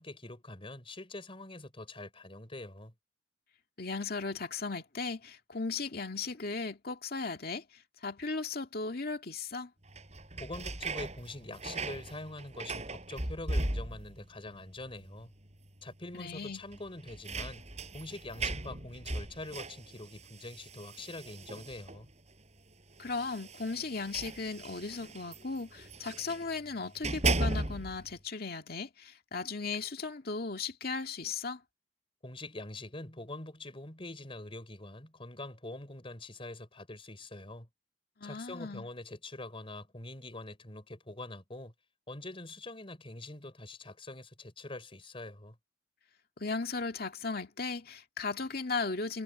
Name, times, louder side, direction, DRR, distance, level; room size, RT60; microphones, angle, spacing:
voice 1, 0.0-2.9 10.4-15.3 15.8-17.6 17.9-22.1 32.2-37.7 38.2-41.7 42.1-45.6, left 2 dB, 30° left, 4.1 m, -44 dB
voice 2, 3.8-9.7 16.1-16.6 23.0-31.6 38.2-38.9 46.4-49.2, left 4 dB, 55° left, 2.2 m, -36 dB
sound 1, 9.9-14.3 14.5-15.2 15.5-15.6 16.7-22.1 23.0-26.5 26.9-28.1, right 2 dB, 40° right, 5.4 m, -37 dB
head